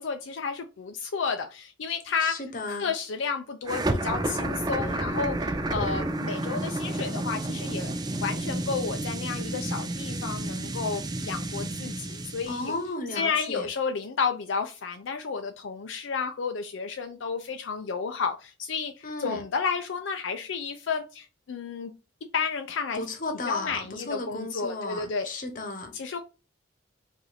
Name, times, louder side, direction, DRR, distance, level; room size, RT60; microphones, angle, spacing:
voice 1, 0.0-7.9 8.2-12.7 13.1-21.9 22.3-23.0 23.5-25.4 25.9-26.2, left 5 dB, 75° left, 0.5 m, -31 dB
voice 2, 2.2-2.9 12.5-13.7 19.0-19.4 22.9-25.9, left 2 dB, 45° left, 1.0 m, -34 dB
sound 1, 3.6-12.8, right 1 dB, 20° right, 0.5 m, -31 dB
4.8 x 2.6 x 4.2 m
head